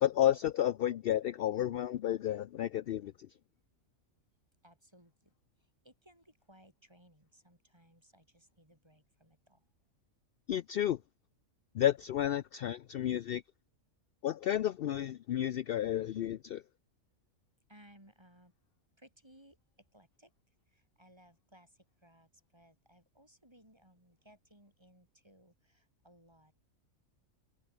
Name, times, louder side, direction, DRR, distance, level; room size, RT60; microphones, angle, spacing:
voice 1, 0.0-3.3 10.5-11.0 11.7-13.4 14.2-16.6, left 11 dB, 65° left, 0.5 m, -31 dB
voice 2, 4.6-5.3 5.8-9.6 17.7-18.5 19.0-19.6 19.9-20.3 20.7-26.5, equal, 20° right, 8.1 m, -62 dB
omnidirectional pair, 1.5 m